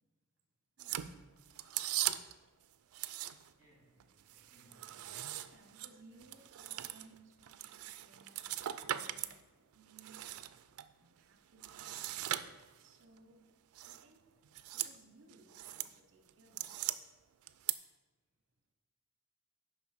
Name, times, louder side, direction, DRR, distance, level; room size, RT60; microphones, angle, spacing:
sound 1, 0.8-2.4 2.9-3.6 4.0-9.4 9.7-10.8 11.6-12.9 13.7-14.0 14.4-14.9 15.3-15.9 16.3-17.0 17.5-17.7, right 13 dB, 90° right, 0.4 m, -40 dB
voice 1, 3.6-5.2 6.1-6.3, equal, 35° left, -6 dB, 3.0 m, -67 dB
voice 2, 5.4-8.5 8.8-9.3 9.7-10.4 11.0-12.1 12.8-13.5 13.8-14.3 14.7-16.8, right 3 dB, 60° right, 4 dB, 1.0 m, -62 dB
7.1 x 5.2 x 6.0 m, 1.2 s
head